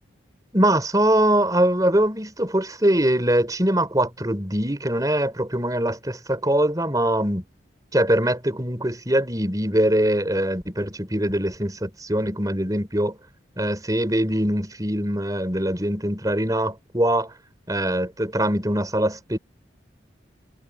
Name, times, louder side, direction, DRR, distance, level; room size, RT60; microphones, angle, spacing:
voice 1, 0.5-7.4 7.9-13.2 13.6-17.3 17.7-19.4, right 1 dB, 20° right, 4.5 m, -22 dB
head